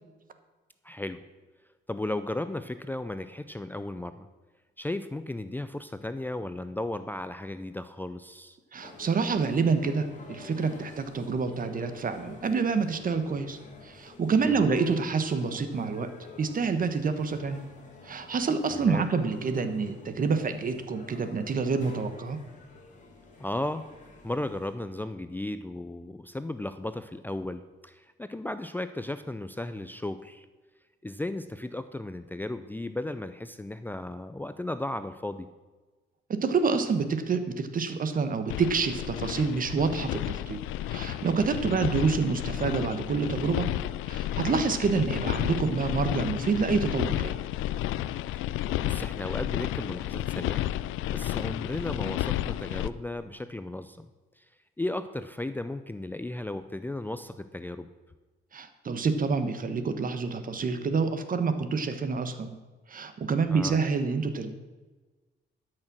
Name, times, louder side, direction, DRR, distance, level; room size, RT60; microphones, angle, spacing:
voice 1, 0.8-1.2 1.9-4.3 4.8-8.6 14.4-14.7 18.7-19.1 23.4-23.9 24.2-30.5 31.0-35.5 41.5-41.8 48.4-48.6 48.8-50.6 51.1-54.1 54.4-54.5 54.8-57.9 63.5-63.8, left 1 dB, 10° left, 11 dB, 0.5 m, -35 dB
voice 2, 8.7-13.6 13.8-16.1 16.4-17.6 18.0-22.4 36.3-40.6 40.9-43.7 44.1-47.4 58.5-62.6 62.9-64.6, right 5 dB, 45° right, 10 dB, 1.2 m, -27 dB
sound 1, 8.8-24.7, left 3 dB, 40° left, 2.5 m, -49 dB
sound 2, 38.5-52.9, left 13 dB, 90° left, 0.4 m, -32 dB
12.5 x 6.6 x 6.1 m, 1.3 s
cardioid pair, 90°, 20 cm